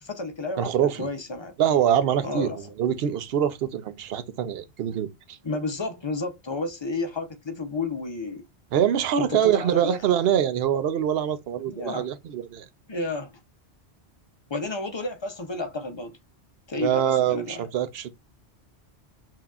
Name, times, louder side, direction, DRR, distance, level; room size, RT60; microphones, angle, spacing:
voice 1, 0.0-1.6 2.2-2.6 5.4-8.4 9.2-10.0 11.7-12.1 12.9-13.3 14.5-16.1 16.7-17.6, left 2 dB, 35° left, 0.5 m, -31 dB
voice 2, 0.6-1.1 1.6-5.4 8.7-12.7 16.8-18.1, right 9 dB, 65° right, 0.8 m, -24 dB
5.6 x 2.8 x 2.3 m
omnidirectional pair, 1.1 m